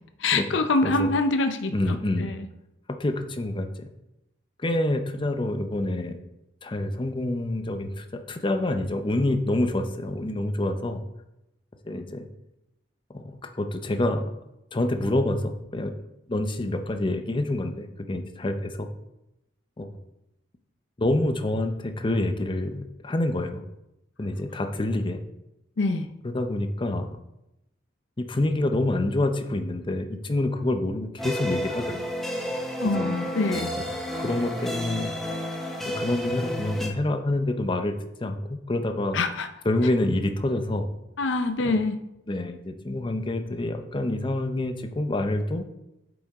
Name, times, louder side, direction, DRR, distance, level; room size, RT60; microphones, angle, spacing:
voice 1, 0.2-2.4 25.8-26.1 32.8-33.7 39.1-39.5 41.2-42.0, left 3 dB, 75° left, 8 dB, 0.6 m, -25 dB
voice 2, 1.7-2.3 3.0-3.9 4.6-6.2 6.6-11.0 11.8-12.3 13.1-14.2 14.7-15.9 16.3-18.9 19.8-20.0 21.0-23.6 24.2-25.2 26.3-27.1 28.2-32.0 33.0-33.1 34.2-35.1 35.9-37.9 38.2-39.2 39.7-40.9 41.6-41.8 42.3-45.6, left 1 dB, 25° left, 7 dB, 0.6 m, -27 dB
sound 1, 31.2-36.9, equal, ahead, 0.9 m, -31 dB
8.5 x 5.1 x 3.5 m, 0.91 s
head